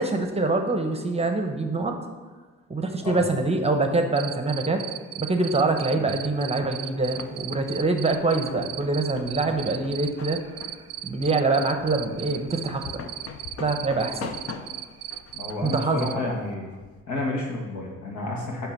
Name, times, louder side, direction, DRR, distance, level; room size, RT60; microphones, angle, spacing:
voice 1, 0.0-1.9 2.7-4.8 5.2-10.4 11.0-12.9 13.6-14.3 15.6-16.1, right 3 dB, 20° right, 5 dB, 0.9 m, -24 dB
Cricket, 4.2-16.1, right 13 dB, 55° right, 0.4 m, -36 dB
sound 1, 6.6-17.0, left 5 dB, 50° left, 0.8 m, -43 dB
voice 2, 15.3-16.7 17.1-18.7, left 2 dB, 70° left, 0 dB, 2.0 m, -31 dB
9.7 x 3.5 x 6.1 m, 1.3 s
cardioid pair, 90°, 30 cm